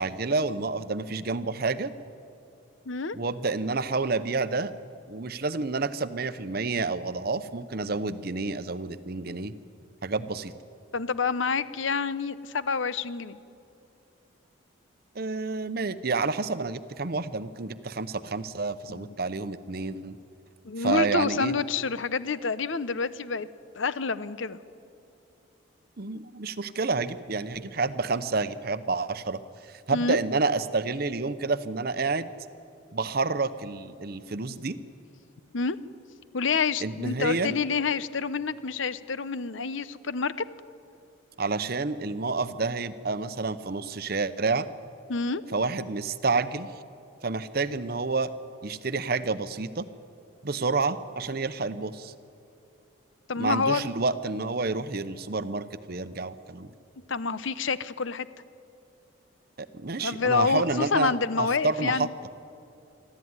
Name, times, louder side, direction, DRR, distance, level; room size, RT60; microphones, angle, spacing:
voice 1, 0.0-1.9 3.1-4.7 5.1-9.5 10.0-10.5 15.2-20.2 20.8-21.5 26.0-29.4 29.9-32.3 32.9-34.8 36.8-37.5 41.4-44.7 45.5-46.7 47.2-48.3 48.6-49.9 50.4-52.1 53.4-56.7 59.7-62.1, right 3 dB, 50° right, 13 dB, 0.8 m, -29 dB
voice 2, 2.9-3.2 10.9-13.4 18.9-19.1 20.6-23.5 23.8-24.6 29.9-30.2 35.5-35.8 36.3-40.3 45.1-45.4 53.3-53.8 57.1-58.3 60.0-62.1, left 4 dB, 70° left, 15 dB, 0.8 m, -28 dB
25.0 x 14.0 x 9.6 m, 2.7 s
head